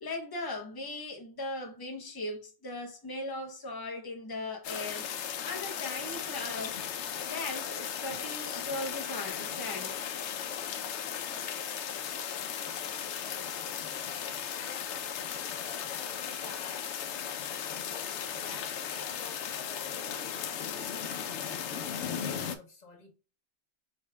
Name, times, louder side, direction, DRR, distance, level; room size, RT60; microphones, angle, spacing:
voice 1, 0.0-5.1 5.4-6.8 7.2-10.0, left 2 dB, 20° left, 0.8 m, -38 dB
sound 1, 4.6-22.6, left 8 dB, 80° left, 0.9 m, -36 dB
voice 2, 12.3-14.0 14.5-14.9 15.7-16.9 17.9-23.1, left 3 dB, 40° left, 1.3 m, -52 dB
5.1 x 3.5 x 2.2 m
omnidirectional pair, 1.2 m